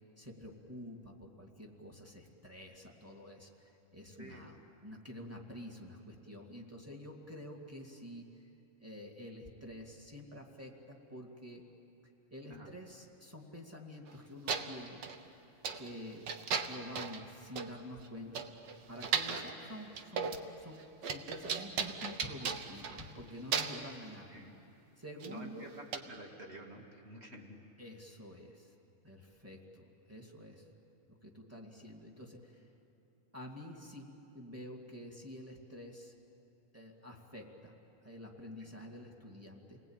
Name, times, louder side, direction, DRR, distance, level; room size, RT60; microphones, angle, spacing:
voice 1, 0.2-8.3 8.8-11.6 12.3-15.0 15.8-16.3 16.7-18.4 18.9-24.4 25.0-25.7 27.8-28.7 29.0-30.7 31.1-32.7 33.3-36.1 36.7-37.7 38.0-39.8, equal, 5° right, 0 dB, 1.6 m, -48 dB
sound 1, 14.1-14.2 14.5-15.2 15.6-15.9 16.3-17.2 17.6-17.7 18.0-18.1 18.3-19.5 19.9-20.5 20.7-23.2 23.5-23.9 25.2-25.3 25.9-26.0, right 6 dB, 75° right, 1.0 m, -36 dB
voice 2, 25.2-27.6 38.6-38.7, right 1 dB, 25° right, 1 dB, 2.1 m, -50 dB
29.5 x 20.0 x 8.9 m, 2.8 s
omnidirectional pair, 3.5 m